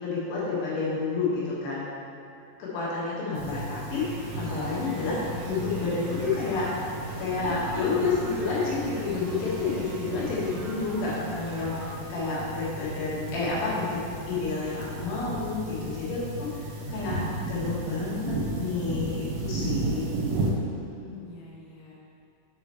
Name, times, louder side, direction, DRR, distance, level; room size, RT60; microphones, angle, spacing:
voice 1, 0.0-1.9 2.6-5.2 5.5-6.7 7.2-11.7 12.1-14.0 14.3-16.5 16.9-20.1, left 4 dB, 70° left, -7 dB, 3.6 m, -29 dB
sound 1, 3.3-20.5, right 2 dB, 75° right, 1.9 m, -35 dB
sound 2, 3.9-11.9, right 2 dB, 50° right, 1.7 m, -42 dB
voice 2, 15.8-16.4 20.5-21.9, equal, 85° left, -5 dB, 3.1 m, -43 dB
7.5 x 7.2 x 3.1 m, 2.6 s
omnidirectional pair, 5.1 m